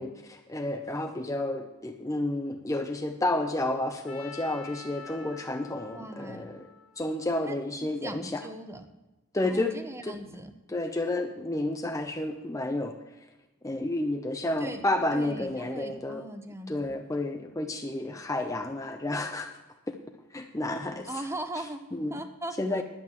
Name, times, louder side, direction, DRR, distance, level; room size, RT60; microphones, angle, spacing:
voice 1, 0.0-6.7 7.0-8.4 9.3-9.7 10.0-10.2 10.7-12.9 13.6-16.2 16.7-19.6 19.9-20.0 20.3-21.1 21.9-22.2 22.6-22.8, left 2 dB, 15° left, 5 dB, 0.6 m, -31 dB
Trumpet, 4.1-8.1, left 5 dB, 65° left, 1.6 m, -48 dB
voice 2, 5.9-6.6 7.4-8.9 9.4-10.5 14.6-14.8 15.1-17.0 21.1-21.8 22.1-22.8, right 1 dB, 10° right, 8 dB, 0.9 m, -40 dB
11.0 x 9.2 x 7.3 m, 1.0 s
head